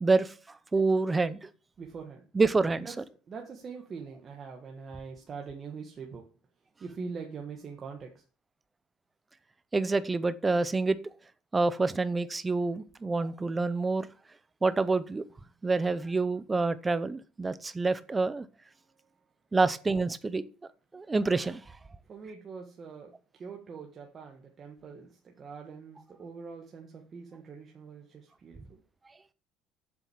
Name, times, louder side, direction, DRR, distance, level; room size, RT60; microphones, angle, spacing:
voice 1, 0.0-1.5 2.3-2.9 9.7-11.0 11.5-14.1 14.6-15.3 15.6-18.5 19.5-20.4 20.9-21.6, right 3 dB, 15° right, 15 dB, 0.7 m, -27 dB
voice 2, 1.8-2.2 2.8-2.9 3.3-6.2 6.8-8.2 22.1-28.8, right 5 dB, 30° right, 1 dB, 1.7 m, -43 dB
7.8 x 7.5 x 7.2 m, 0.38 s
cardioid pair, 140°, 0 cm